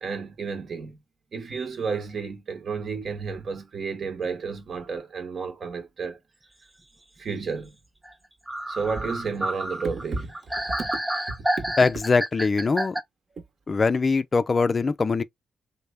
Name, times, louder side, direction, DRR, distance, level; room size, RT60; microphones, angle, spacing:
voice 1, 0.0-1.0 1.3-6.2 7.2-7.8 8.7-10.3 10.7-11.2 11.6-11.7, right 5 dB, 60° right, 1.1 m, -32 dB
sound 1, 8.0-8.1 8.5-13.0, right 1 dB, 15° right, 0.6 m, -29 dB
voice 2, 11.8-13.0 13.7-15.2, left 4 dB, 40° left, 0.3 m, -22 dB
3.3 x 2.2 x 3.2 m
cardioid pair, 80°, 0 cm